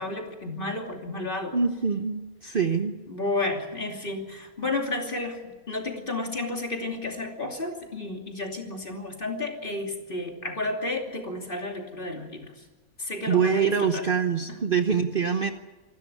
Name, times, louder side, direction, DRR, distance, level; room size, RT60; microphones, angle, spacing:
voice 1, 0.0-1.6 2.4-2.6 3.1-12.5 13.0-14.1, left 2 dB, 35° left, 2 dB, 3.1 m, -32 dB
voice 2, 1.5-2.9 13.3-15.5, right 6 dB, 40° right, 7 dB, 1.1 m, -24 dB
26.0 x 12.5 x 9.7 m, 1.2 s
omnidirectional pair, 1.5 m